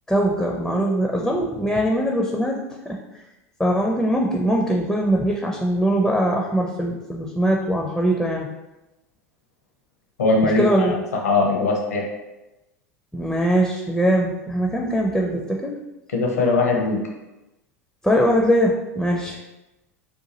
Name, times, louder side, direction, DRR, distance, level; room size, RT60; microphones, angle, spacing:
voice 1, 0.1-2.6 2.9-3.0 3.6-8.5 10.6-11.0 13.1-15.7 18.0-19.4, equal, 5° left, 0 dB, 0.4 m, -21 dB
voice 2, 10.2-10.9 11.2-12.0 16.1-17.0, left 3 dB, 70° left, 0 dB, 0.7 m, -20 dB
2.8 x 2.4 x 4.0 m, 1.0 s
figure-of-eight pair, 85°, 8 cm